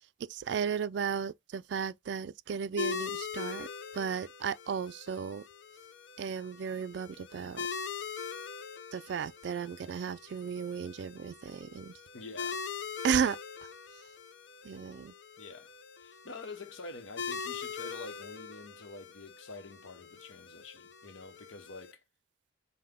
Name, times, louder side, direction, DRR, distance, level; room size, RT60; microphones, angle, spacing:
voice 1, 0.3-3.7 3.9-5.4 6.2-7.7 8.9-11.9 13.0-13.4 14.6-15.1, right 7 dB, 60° right, 0.3 m, -34 dB
sound 1, 2.8-21.9, left 5 dB, 65° left, 0.5 m, -42 dB
voice 2, 12.1-12.6 15.4-15.7 16.0-22.0, left 3 dB, 90° left, 0.9 m, -47 dB
5.6 x 2.1 x 3.5 m
head